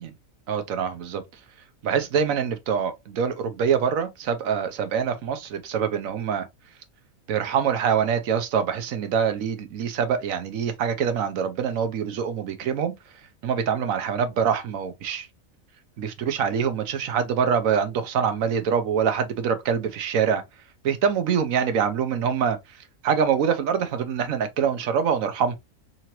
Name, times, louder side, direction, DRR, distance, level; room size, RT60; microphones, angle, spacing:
voice 1, 0.5-1.2 1.8-6.4 7.3-12.9 13.4-15.3 16.0-20.4 20.8-22.6 23.0-25.5, right 7 dB, 75° right, 1.1 m, -24 dB
3.8 x 3.0 x 2.9 m
omnidirectional pair, 1.4 m